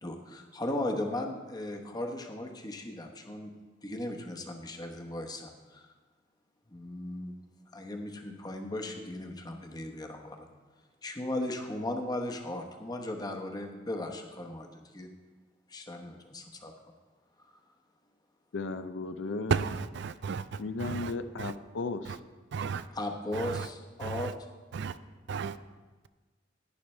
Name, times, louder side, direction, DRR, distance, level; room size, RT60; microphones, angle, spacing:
voice 1, 0.0-3.5 3.8-5.9 6.7-7.4 7.7-10.5 11.0-15.1 15.7-16.7 17.5-17.6 23.0-24.3, left 1 dB, 20° left, 1.0 m, -37 dB
voice 2, 18.5-19.6 20.6-22.2, left 3 dB, 80° left, 0.5 m, -35 dB
voice 3, 19.5-21.1 21.4-21.5 22.1-22.2 22.5-22.8 23.3-23.7 24.0-24.3 24.7-25.0 25.3-25.6, right 5 dB, 65° right, 0.4 m, -33 dB
11.5 x 10.5 x 3.2 m
head